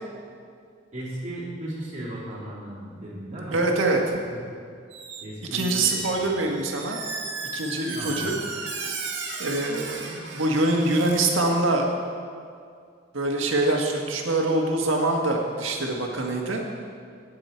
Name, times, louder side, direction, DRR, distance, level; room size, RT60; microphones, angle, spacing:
voice 1, 0.9-3.6 4.3-4.4 5.2-6.2 7.9-8.3, right 1 dB, 35° right, -7 dB, 3.3 m, -36 dB
voice 2, 3.5-4.2 5.5-7.0 7.5-8.3 9.4-11.9 13.1-16.6, right 2 dB, 85° right, 1 dB, 1.7 m, -24 dB
Squeak, 4.9-5.3 5.5-11.2, right 4 dB, 65° right, 1.9 m, -35 dB
18.0 x 7.5 x 4.5 m, 2.2 s
head